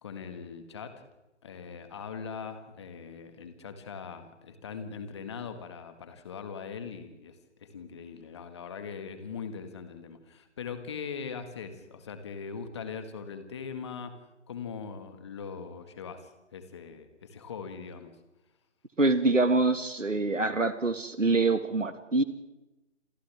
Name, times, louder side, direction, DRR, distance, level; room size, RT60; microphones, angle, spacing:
voice 1, 0.0-1.1 1.4-14.2 14.5-18.1, left 6 dB, 20° left, 8 dB, 1.9 m, -41 dB
voice 2, 19.0-22.2, right 3 dB, 90° right, 9 dB, 2.0 m, -25 dB
28.0 x 27.5 x 3.6 m, 0.98 s
figure-of-eight pair, 155°, 37 cm